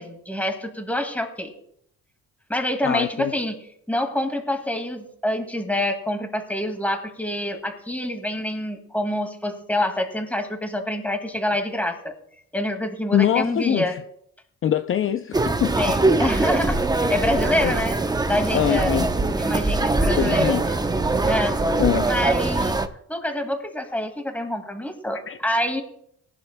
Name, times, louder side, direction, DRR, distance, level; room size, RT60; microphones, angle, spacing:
voice 1, 0.0-1.5 2.5-3.6 3.9-12.1 12.5-14.0 15.8-18.0 18.3-19.0 19.4-20.6 21.2-21.6 22.0-22.7 23.1-25.8, left 1 dB, 5° left, 5 dB, 2.0 m, -26 dB
voice 2, 2.8-3.3 13.1-14.0 14.6-15.8 16.1-16.2 17.3-17.7 18.5-19.1 20.2-20.7 21.8-22.1 25.3-25.4, left 10 dB, 45° left, 9 dB, 0.5 m, -23 dB
sound 1, 15.3-22.9, right 2 dB, 15° right, 0.7 m, -22 dB
18.5 x 11.5 x 2.2 m, 0.69 s
cardioid pair, 90°, 30 cm